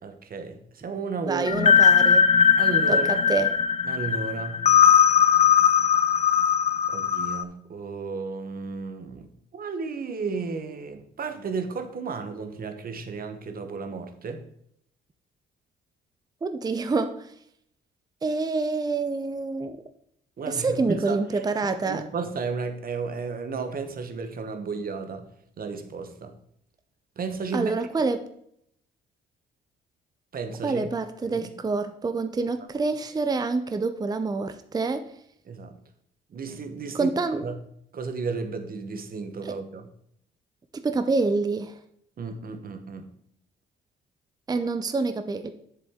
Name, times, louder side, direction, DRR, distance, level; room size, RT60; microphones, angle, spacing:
voice 1, 0.0-1.5 2.6-3.2 3.8-4.6 6.9-14.4 20.4-21.2 21.8-25.3 25.6-26.3 27.2-27.7 30.3-30.9 31.2-31.5 35.5-35.7 36.3-37.1 37.4-37.5 37.9-39.9 42.2-43.1, right 4 dB, 45° right, 8 dB, 1.2 m, -33 dB
voice 2, 1.3-2.3 2.9-3.5 16.4-17.2 18.2-19.8 20.5-22.0 27.5-28.3 30.6-35.0 36.9-37.5 39.4-39.5 40.7-41.7 44.5-45.5, right 3 dB, 20° right, 9 dB, 0.6 m, -27 dB
sound 1, 1.5-7.4, left 7 dB, 35° left, 0.4 m, -19 dB
7.5 x 7.1 x 3.7 m, 0.71 s
cardioid pair, 90°, 20 cm